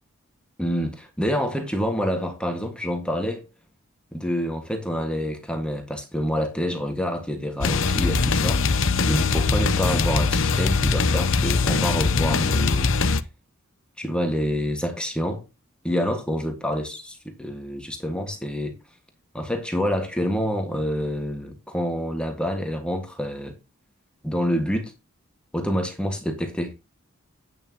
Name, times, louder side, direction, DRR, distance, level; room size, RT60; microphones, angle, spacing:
voice 1, 0.6-3.4 4.1-12.9 14.0-15.4 15.8-18.8 19.3-23.6 24.2-24.9 25.5-26.7, equal, 5° left, 1.7 m, -27 dB
sound 1, 7.6-13.2, left 4 dB, 60° left, 0.8 m, -21 dB
10.0 x 9.4 x 3.0 m
head